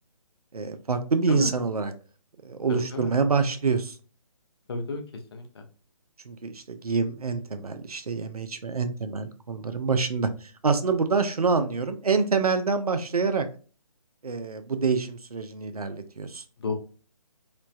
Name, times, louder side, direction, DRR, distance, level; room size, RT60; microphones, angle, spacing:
voice 1, 0.5-1.9 2.4-4.0 6.3-13.5 14.2-16.4, right 4 dB, 85° right, 8 dB, 0.5 m, -26 dB
voice 2, 2.7-3.1 4.7-5.0 5.3-5.6 16.6-16.7, left 3 dB, 45° left, 5 dB, 0.6 m, -32 dB
3.1 x 2.0 x 2.4 m, 0.38 s
figure-of-eight pair, 145°, 19 cm